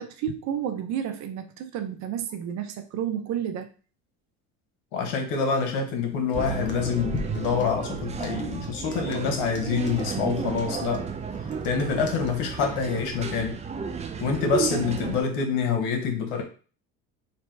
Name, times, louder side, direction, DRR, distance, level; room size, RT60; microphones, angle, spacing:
voice 1, 0.0-3.7, right 9 dB, 55° right, 7 dB, 0.8 m, -31 dB
voice 2, 4.9-11.1 11.6-13.6 14.2-16.4, left 5 dB, 85° left, 4 dB, 1.3 m, -26 dB
sound 1, 6.1-12.4, left 3 dB, 35° left, 1.0 m, -42 dB
sound 2, 6.3-15.2, right 6 dB, 20° right, 0.5 m, -32 dB
3.4 x 2.8 x 4.5 m, 0.38 s
supercardioid pair, 110°, 33 cm